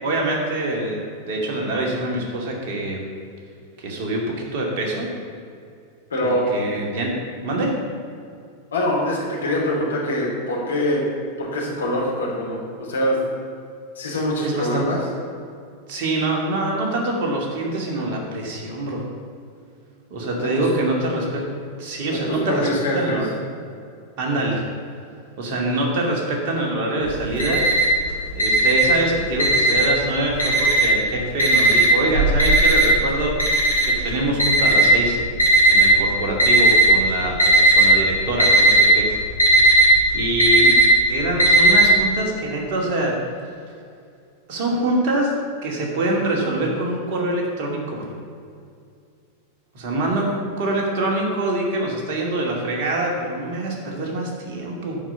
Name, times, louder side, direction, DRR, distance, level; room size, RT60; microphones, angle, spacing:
voice 1, 0.0-3.0 3.8-5.1 6.2-7.8 14.4-14.8 15.9-19.0 20.1-21.5 21.8-22.7 22.9-23.3 24.2-24.6 25.4-27.6 28.3-33.4 33.8-35.2 35.7-39.1 40.1-40.8 41.1-43.2 44.5-48.1 49.7-55.0, right 2 dB, 45° right, -1 dB, 2.6 m, -24 dB
voice 2, 6.1-6.5 8.7-11.0 11.4-13.2 13.9-15.0 20.4-20.7 22.1-23.2, left 1 dB, 70° left, -3 dB, 3.1 m, -24 dB
Alarm, 27.1-28.0 28.4-30.0 30.4-31.0 31.4-35.9 36.4-37.0 37.3-37.9 38.2-41.9, right 2 dB, 85° left, 2.5 m, -16 dB
11.0 x 5.2 x 8.2 m, 2.4 s
figure-of-eight pair, 90°, 0 cm